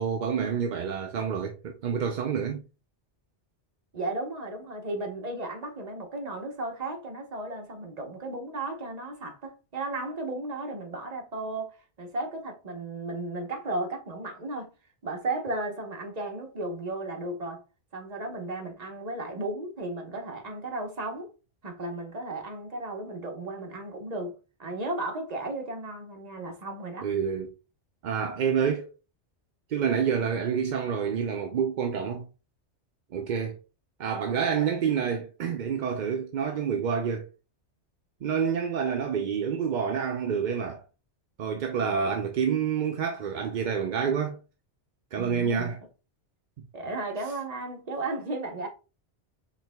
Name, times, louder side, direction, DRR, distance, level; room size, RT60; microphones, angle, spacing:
voice 1, 0.0-2.6 27.0-27.5 28.0-28.9 29.7-32.3 33.1-33.6 34.0-37.3 38.2-40.8 41.4-44.4 45.1-45.8, right 7 dB, 55° right, 0.5 m, -28 dB
voice 2, 3.9-14.7 15.0-17.6 17.9-21.3 21.6-27.1 45.1-45.7 46.7-48.7, right 2 dB, 40° right, 0.9 m, -35 dB
4.7 x 3.4 x 2.2 m
omnidirectional pair, 1.2 m